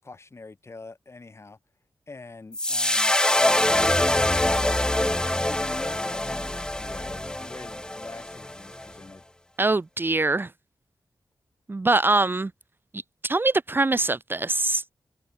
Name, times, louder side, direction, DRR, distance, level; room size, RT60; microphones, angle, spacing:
voice 1, 0.0-1.6 2.1-3.2 4.1-9.2, left 3 dB, 35° left, 7.9 m, -44 dB
sound 1, 2.5-8.9, left 1 dB, 10° left, 0.6 m, -24 dB
voice 2, 9.6-10.5 11.7-12.5 13.2-14.9, right 2 dB, 25° right, 1.3 m, -23 dB
wide cardioid pair, 140°, 8 cm